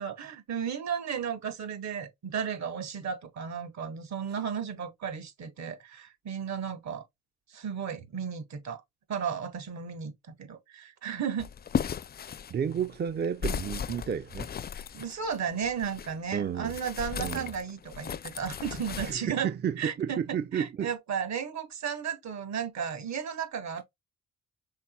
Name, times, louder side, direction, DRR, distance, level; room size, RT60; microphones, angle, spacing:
voice 1, 0.0-7.0 7.5-8.8 9.1-10.1 10.4-11.5 14.9-19.5 19.8-23.8, right 7 dB, 65° right, 2.1 m, -34 dB
sound 1, 11.4-16.2 16.6-19.2, left 8 dB, 35° left, 0.4 m, -36 dB
voice 2, 12.5-14.5 16.3-16.7 17.2-17.5 19.0-20.9, right 8 dB, 35° right, 0.5 m, -31 dB
5.7 x 4.1 x 2.2 m
cardioid pair, 90°, 30 cm